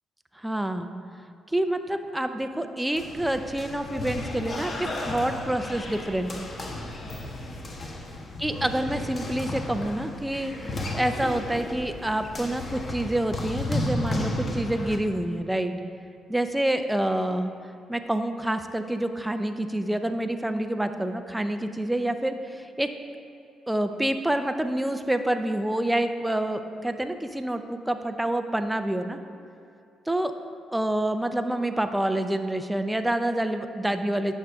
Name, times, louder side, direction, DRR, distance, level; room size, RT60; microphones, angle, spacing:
voice 1, 0.4-0.9 1.5-6.4 8.4-15.7 16.3-17.5 17.9-22.9 23.7-29.2 30.1-30.3 30.7-34.3, right 1 dB, 5° right, 7 dB, 0.5 m, -27 dB
sound 1, 2.9-15.0, left 1 dB, 40° left, 0.9 m, -33 dB
10.5 x 6.4 x 3.5 m, 2.6 s
cardioid pair, 90°, 0 cm